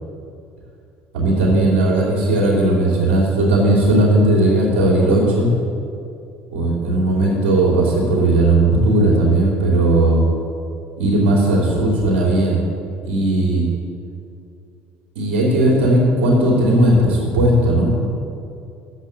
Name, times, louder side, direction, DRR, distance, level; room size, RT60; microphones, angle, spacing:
voice 1, 1.1-5.5 6.5-10.2 11.0-12.6 13.0-13.7 15.1-17.9, right 1 dB, 80° right, -3 dB, 2.6 m, -16 dB
8.3 x 7.4 x 6.9 m, 2.5 s
hypercardioid pair, 65°, 6 cm